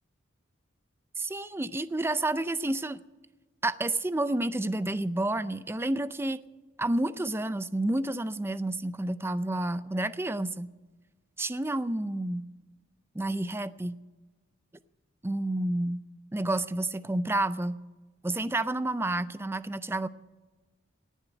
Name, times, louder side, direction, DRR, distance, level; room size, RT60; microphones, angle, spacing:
voice 1, 1.2-3.0 3.6-6.4 6.8-10.7 11.4-12.5 13.1-14.0 15.2-16.0 16.3-17.8 18.2-20.1, right 2 dB, 10° right, 15 dB, 0.4 m, -30 dB
18.5 x 7.3 x 9.1 m, 1.2 s
head